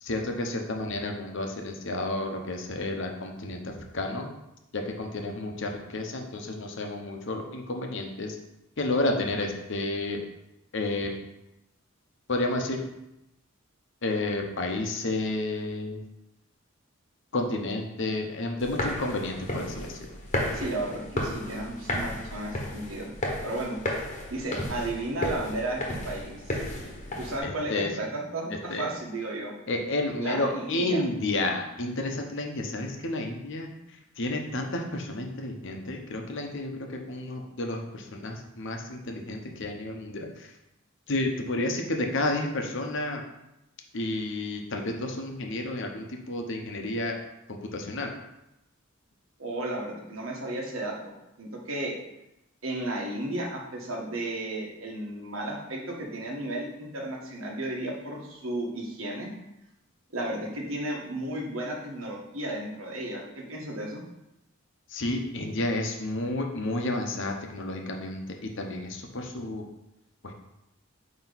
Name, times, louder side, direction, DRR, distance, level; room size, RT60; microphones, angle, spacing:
voice 1, 0.0-4.3 4.7-8.4 8.8-10.2 10.7-11.1 12.3-12.8 14.0-16.0 17.3-20.0 27.4-27.9 28.7-28.9 29.7-33.7 34.2-40.5 41.1-43.2 43.9-47.1 47.5-48.1 64.9-69.6 70.2-70.3, left 2 dB, 65° left, 3 dB, 1.0 m, -31 dB
sound 1, 18.6-27.4, left 1 dB, 35° left, 1.2 m, -33 dB
voice 2, 20.5-23.1 23.4-23.8 24.3-26.5 27.2-29.5 30.2-31.0 49.4-51.1 51.4-52.0 52.6-59.3 60.1-64.0, right 1 dB, 75° right, -2 dB, 1.5 m, -33 dB
8.9 x 3.1 x 4.1 m, 0.89 s
head